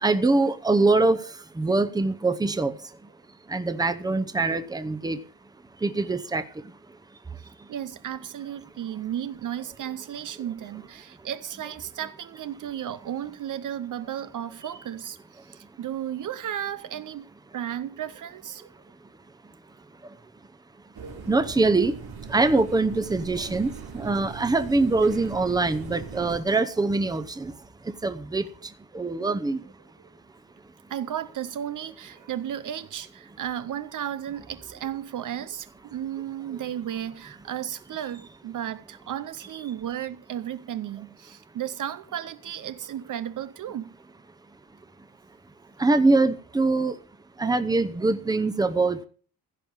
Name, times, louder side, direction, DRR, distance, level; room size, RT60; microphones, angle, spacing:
voice 1, 0.0-1.2 1.6-2.7 3.5-5.2 5.8-6.4 21.3-21.9 22.3-27.5 28.0-28.5 28.9-29.6 45.8-46.9 47.4-49.0, right 3 dB, 10° right, 0.8 m, -23 dB
voice 2, 7.7-15.2 15.5-17.3 17.5-18.7 30.9-44.0, right 10 dB, 55° right, 0.7 m, -34 dB
sound 1, 20.9-26.4, right 5 dB, 85° right, 4.2 m, -40 dB
16.0 x 5.4 x 8.8 m
wide cardioid pair, 165°, 37 cm